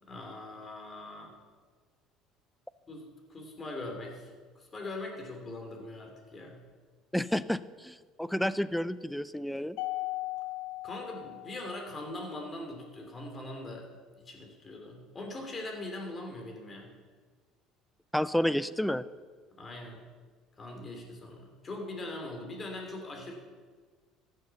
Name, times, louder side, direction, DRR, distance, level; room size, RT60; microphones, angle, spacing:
voice 1, 0.0-1.3 2.9-4.3 4.5-6.6 10.8-13.9 14.2-16.9 19.6-20.1 20.6-23.3, left 2 dB, 25° left, 2 dB, 2.9 m, -41 dB
voice 2, 7.1-9.8 18.1-19.0, equal, 5° left, 16 dB, 0.4 m, -30 dB
Mallet percussion, 9.8-12.2, left 19 dB, 75° left, 0.6 m, -38 dB
14.5 x 6.7 x 7.0 m, 1.5 s
cardioid pair, 115°, 0 cm